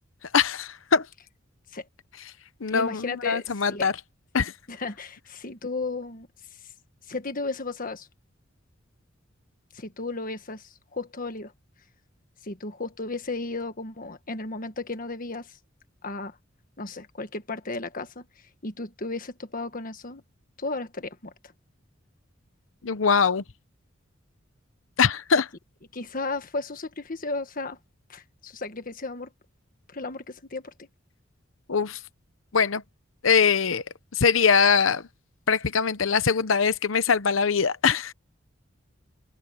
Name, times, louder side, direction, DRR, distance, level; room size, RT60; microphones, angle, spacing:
voice 1, 0.3-1.1 2.6-3.9 4.3-4.5 22.8-23.4 25.0-25.5 31.7-32.0 32.5-32.8 33.2-33.8 34.1-35.0 35.5-38.1, left 6 dB, 90° left, 0.8 m, -22 dB
voice 2, 2.7-3.9 4.7-6.3 7.1-8.1 9.7-11.5 12.4-15.6 16.0-16.4 16.8-18.2 18.6-20.2 20.6-21.3 25.9-27.8 28.1-29.3 29.9-30.9, left 3 dB, 45° left, 1.5 m, -34 dB
open air
head